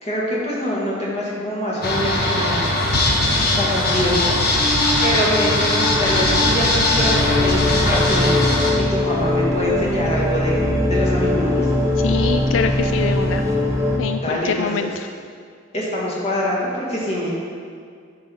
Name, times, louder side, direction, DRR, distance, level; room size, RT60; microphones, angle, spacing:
voice 1, 0.0-2.7 3.5-4.5 5.0-10.6 10.9-11.7 14.2-14.9 15.7-17.3, equal, 35° left, -5 dB, 2.0 m, -24 dB
sound 1, 1.8-8.7, left 1 dB, 55° left, 1.3 m, -19 dB
sound 2, 7.0-14.0, left 1 dB, 15° right, 0.9 m, -20 dB
voice 2, 12.0-13.5 14.0-15.1, left 6 dB, 80° left, 8 dB, 0.3 m, -24 dB
10.5 x 4.6 x 5.4 m, 2.1 s
head